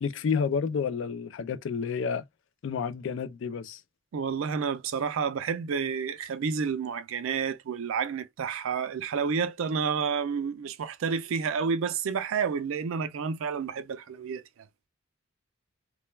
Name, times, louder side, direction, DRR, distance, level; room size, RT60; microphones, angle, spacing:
voice 1, 0.0-2.2 2.6-3.8, left 6 dB, 60° left, 0.3 m, -30 dB
voice 2, 4.1-14.4, right 6 dB, 70° right, 0.4 m, -30 dB
2.2 x 2.1 x 3.1 m
head